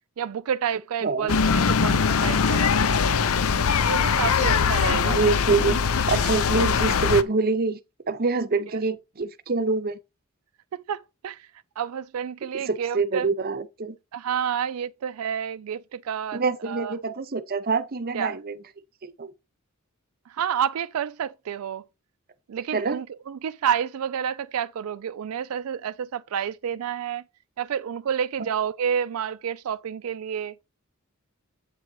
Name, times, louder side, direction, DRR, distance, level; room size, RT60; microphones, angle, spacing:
voice 1, 0.2-3.3 3.8-5.2 8.7-8.8 10.7-11.5 11.8-13.3 14.1-16.9 18.1-18.4 20.3-21.8 22.5-27.2 27.6-30.5, right 8 dB, 85° right, 0.4 m, -29 dB
voice 2, 1.0-1.4 4.9-5.8 6.1-7.8 8.1-10.0 12.5-14.0 16.3-18.6 19.0-19.3 22.7-23.0 28.4-28.5, right 4 dB, 45° right, 0.7 m, -25 dB
sound 1, 1.3-7.2, left 6 dB, 70° left, 0.6 m, -22 dB
8.2 x 3.9 x 4.6 m
head